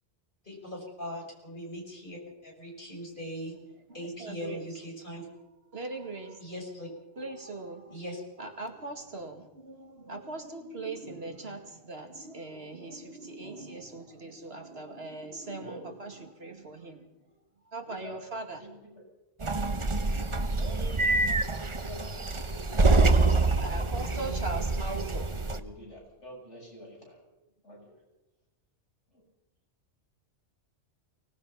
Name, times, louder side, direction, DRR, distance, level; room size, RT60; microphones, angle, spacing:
voice 1, 0.4-3.5 3.9-5.3 6.4-6.9 7.9-8.2, equal, 45° left, -1 dB, 6.5 m, -40 dB
voice 2, 3.9-4.7 5.7-6.4 7.2-8.0 8.4-17.1 17.6-18.7 22.9-23.2 23.6-25.5, right 3 dB, 60° right, 4 dB, 2.5 m, -40 dB
voice 3, 13.3-13.6 15.5-15.9 17.8-18.2 18.6-18.9 20.6-21.3 21.7-23.4 24.2-24.4 24.9-27.2 27.6-28.0 29.1-29.2, equal, 75° left, -2 dB, 8.1 m, -48 dB
sound 1, 19.4-25.6, right 3 dB, 25° right, 1.0 m, -26 dB
24.0 x 19.0 x 5.8 m, 0.95 s
omnidirectional pair, 1.2 m